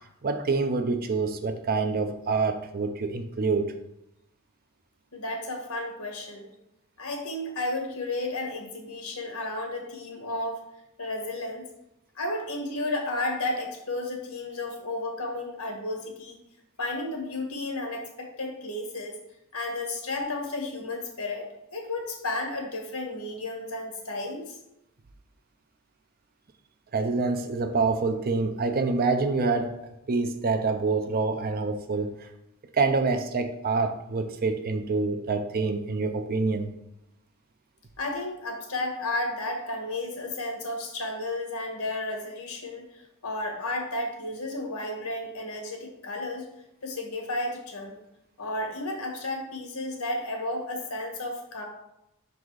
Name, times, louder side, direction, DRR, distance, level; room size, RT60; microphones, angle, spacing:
voice 1, 0.2-3.7 26.9-29.7 30.1-32.3 32.7-36.7, right 4 dB, 45° right, 7 dB, 0.6 m, -26 dB
voice 2, 5.1-6.5 7.0-10.6 11.0-11.6 12.1-16.4 16.8-19.2 19.5-24.6 38.0-46.5 46.8-48.0 48.4-51.6, left 2 dB, 75° left, 1 dB, 1.6 m, -33 dB
5.9 x 4.0 x 4.7 m, 0.84 s
head